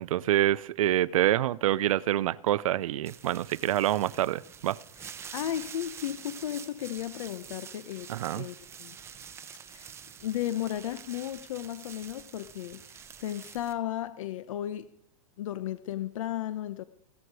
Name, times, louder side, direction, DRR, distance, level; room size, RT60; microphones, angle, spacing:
voice 1, 0.0-4.8 8.1-8.5, right 13 dB, 70° right, 0.7 m, -26 dB
sound 1, 3.1-13.7, right 7 dB, 15° right, 0.9 m, -47 dB
voice 2, 5.3-9.0 9.7-9.9 10.2-14.9 15.4-16.8, left 12 dB, 65° left, 0.9 m, -35 dB
16.0 x 15.0 x 4.8 m
supercardioid pair, 155°, 18 cm